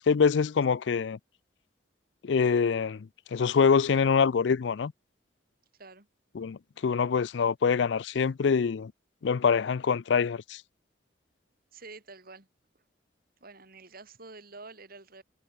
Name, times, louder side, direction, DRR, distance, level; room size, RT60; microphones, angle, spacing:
voice 1, 0.1-1.2 2.2-4.9 6.3-8.9 9.2-10.6, left 6 dB, 70° left, 0.4 m, -25 dB
voice 2, 11.7-12.5 13.4-15.2, right 3 dB, 55° right, 5.2 m, -48 dB
head